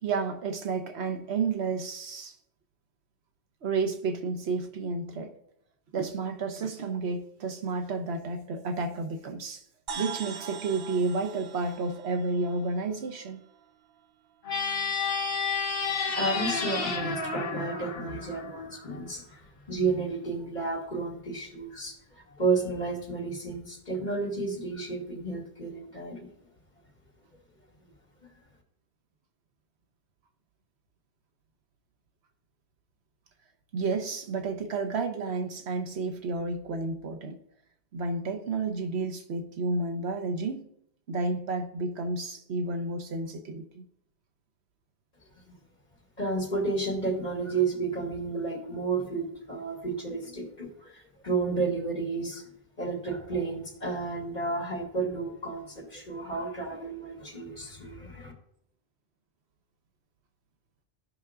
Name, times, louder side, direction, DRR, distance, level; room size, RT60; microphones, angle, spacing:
voice 1, 0.0-2.4 3.6-5.3 5.9-9.6 9.9-13.4 33.7-37.4 37.9-40.7 41.1-43.9, right 3 dB, 90° right, 1.2 m, -31 dB
sound 1, 9.9-13.6, right 6 dB, 65° right, 0.8 m, -42 dB
sound 2, 14.4-18.9, left 4 dB, 65° left, 1.3 m, -31 dB
voice 2, 16.1-19.2 19.7-21.9 22.3-26.3 46.2-52.4 52.8-58.3, right 3 dB, 45° left, 2.3 m, -31 dB
15.0 x 5.7 x 2.4 m
omnidirectional pair, 1.1 m